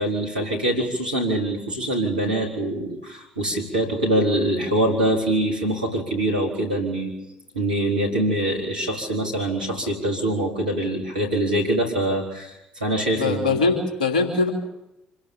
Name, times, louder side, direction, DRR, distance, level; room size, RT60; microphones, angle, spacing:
voice 1, 0.0-7.1 7.5-13.6, right 1 dB, 90° right, 0 dB, 4.2 m, -24 dB
voice 2, 13.1-14.5, left 4 dB, 85° left, 3 dB, 3.0 m, -22 dB
27.0 x 16.0 x 8.9 m, 0.90 s
hypercardioid pair, 55°, 4 cm